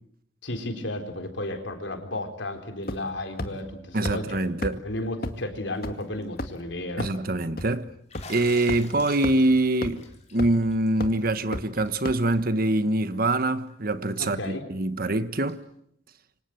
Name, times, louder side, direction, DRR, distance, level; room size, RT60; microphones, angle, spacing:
voice 1, 0.4-4.5 4.8-7.1 14.2-14.7, left 1 dB, 70° left, 4.2 m, -33 dB
sound 1, 2.9-3.1 3.4-3.5 4.1-4.2 4.6-4.7 5.2-5.3 5.8-5.9 6.4-6.6 7.0-7.1 7.6-7.7 8.2-8.3 8.7-8.8 9.2-9.3 9.8-9.9 10.4-10.6 11.0-11.1 11.5-11.6 12.1-12.2, left 1 dB, 50° left, 2.1 m, -30 dB
voice 2, 3.9-4.8 7.0-7.9 8.3-10.0 10.3-15.6, right 2 dB, 50° right, 1.3 m, -24 dB
Bathtub (filling or washing), 5.8-6.2 6.6-6.7 8.1-11.4 11.8-11.9 12.2-12.3 13.7-13.8 15.5-15.6, left 5 dB, 35° left, 4.5 m, -47 dB
27.5 x 25.0 x 7.9 m
head